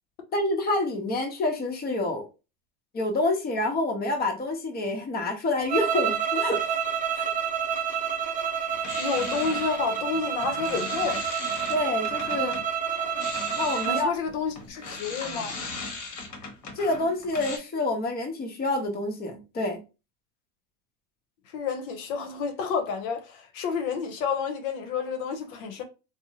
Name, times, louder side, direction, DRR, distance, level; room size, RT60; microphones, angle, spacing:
voice 1, 0.3-2.3 2.9-6.8 7.1-7.3 11.7-12.6 13.5-14.1 16.7-19.8, left 2 dB, 20° left, 0.8 m, -27 dB
sound 1, 5.7-14.1, right 8 dB, 20° right, 0.6 m, -29 dB
sound 2, 8.7-12.7 13.0-17.6, left 3 dB, 45° left, 1.0 m, -38 dB
voice 2, 9.0-11.2 13.0-13.1 13.8-15.6 21.5-25.8, left 5 dB, 70° left, 0.8 m, -30 dB
2.6 x 2.0 x 2.7 m
hypercardioid pair, 90°, 43 cm